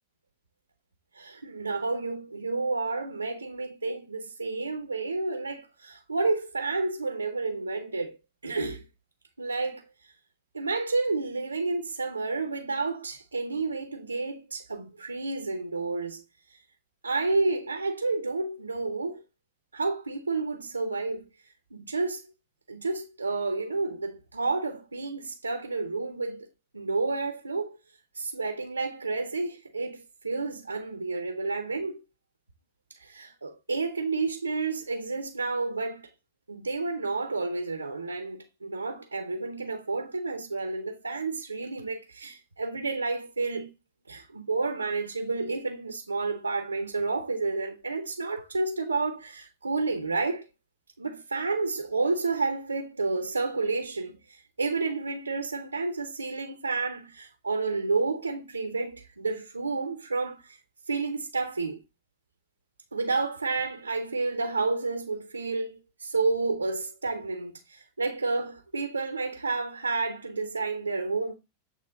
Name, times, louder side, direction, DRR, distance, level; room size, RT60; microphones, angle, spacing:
voice 1, 1.1-8.2 8.4-8.8 9.4-9.8 10.5-16.2 16.5-16.6 17.0-19.2 19.7-21.2 21.7-22.3 22.7-26.5 26.7-27.8 28.1-32.0 32.9-36.1 36.5-43.7 44.1-50.5 51.0-60.6 60.9-61.8 62.9-71.3, right 3 dB, 80° right, 0.7 m, -30 dB
8.6 x 3.0 x 3.7 m
figure-of-eight pair, 90°, 0 cm